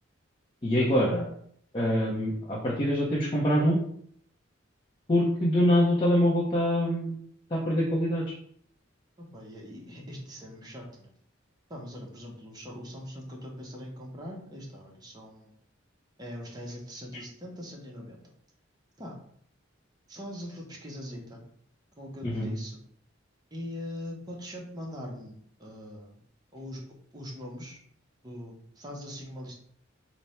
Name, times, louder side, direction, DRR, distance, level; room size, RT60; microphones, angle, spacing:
voice 1, 0.6-1.3 1.7-3.8 5.1-7.2 7.5-8.2 22.2-22.5, equal, 25° left, -5 dB, 0.5 m, -24 dB
voice 2, 9.2-11.1 11.7-15.5 16.2-18.2 19.0-19.1 20.1-21.4 22.0-22.8 23.5-26.2 26.5-26.9 27.1-27.8 28.2-29.6, equal, 20° right, -1 dB, 0.7 m, -41 dB
3.3 x 2.0 x 4.1 m, 0.63 s
head